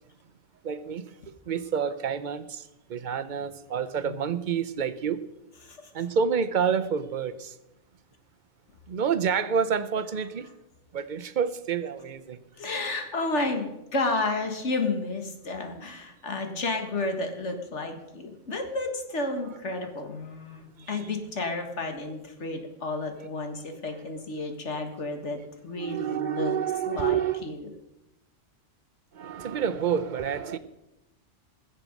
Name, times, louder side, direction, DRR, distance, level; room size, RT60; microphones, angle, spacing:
voice 1, 0.6-1.1 1.5-5.2 5.9-7.6 8.9-10.5 10.9-12.4 20.8-21.1 23.2-23.3 25.8-27.4 29.1-30.6, right 7 dB, 50° right, 0.8 m, -28 dB
voice 2, 12.6-26.5 26.9-27.7, left 2 dB, 75° left, 1.9 m, -31 dB
20.5 x 7.7 x 5.2 m
omnidirectional pair, 1.2 m